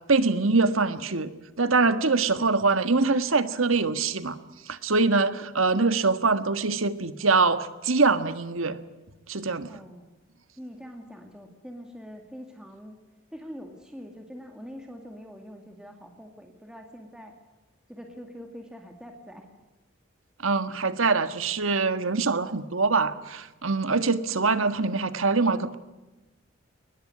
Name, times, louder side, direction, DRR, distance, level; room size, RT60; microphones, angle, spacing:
voice 1, 0.1-1.3 1.6-4.4 4.7-8.8 9.3-9.8 20.4-25.8, right 4 dB, 90° right, 11 dB, 1.6 m, -24 dB
voice 2, 9.7-10.1 10.6-13.0 13.3-17.3 17.9-19.5, equal, 5° right, 3 dB, 2.1 m, -44 dB
22.0 x 20.5 x 9.7 m, 1.1 s
head